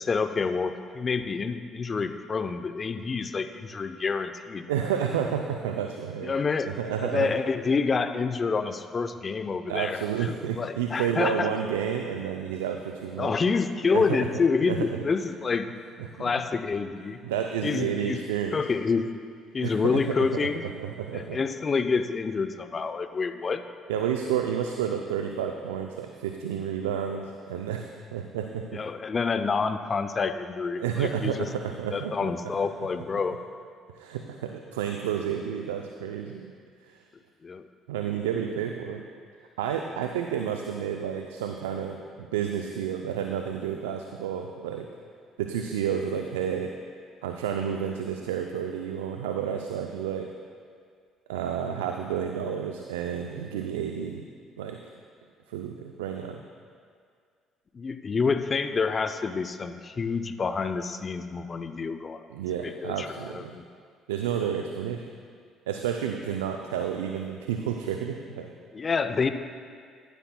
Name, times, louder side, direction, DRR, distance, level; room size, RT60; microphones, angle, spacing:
voice 1, 0.0-4.7 6.2-6.7 7.0-11.5 13.2-15.7 16.2-17.2 17.6-18.2 18.5-19.1 19.5-20.6 21.1-23.6 28.7-31.5 31.9-33.4 37.4-37.6 57.7-62.2 62.6-63.6 68.7-69.3, left 5 dB, 40° left, 9 dB, 0.6 m, -28 dB
voice 2, 4.7-6.3 6.7-7.3 9.7-13.3 13.9-14.2 14.7-15.1 16.0-16.3 17.2-18.6 19.6-21.4 23.9-28.8 30.8-32.5 33.9-36.5 36.8-37.0 37.9-39.0 39.6-44.9 45.4-46.7 47.2-50.3 51.3-54.2 54.6-54.8 55.5-56.4 62.3-63.6 64.1-65.1 65.7-68.5, right 8 dB, 85° right, 4 dB, 0.4 m, -30 dB
15.5 x 11.5 x 2.2 m, 2.1 s
hypercardioid pair, 55°, 0 cm